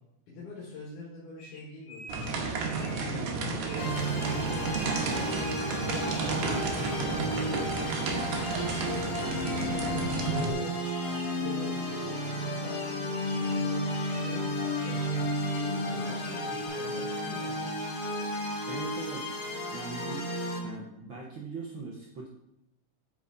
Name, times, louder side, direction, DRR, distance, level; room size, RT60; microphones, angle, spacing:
voice 1, 0.3-2.3 2.7-5.5 6.3-8.0 8.5-8.8 9.1-10.7 11.0-15.4 15.8-17.7, left 2 dB, 85° left, -6 dB, 3.2 m, -44 dB
sound 1, 1.4-3.2 3.6-6.4 6.8-7.1 7.4-8.2 8.4-9.7 10.0-10.4 10.7-11.3 12.6-13.6 13.9-14.4 14.8-15.1 15.4-15.7 16.2-16.7, left 2 dB, 65° left, 2.4 m, -48 dB
sound 2, 2.1-10.5, right 4 dB, 80° right, 2.5 m, -32 dB
sound 3, 3.8-20.6, left 1 dB, 45° left, 1.4 m, -33 dB
voice 2, 6.8-7.1 18.7-19.4 19.7-20.3 20.6-22.3, right 4 dB, 65° right, -2 dB, 1.2 m, -40 dB
8.9 x 5.3 x 3.6 m, 0.85 s
omnidirectional pair, 3.5 m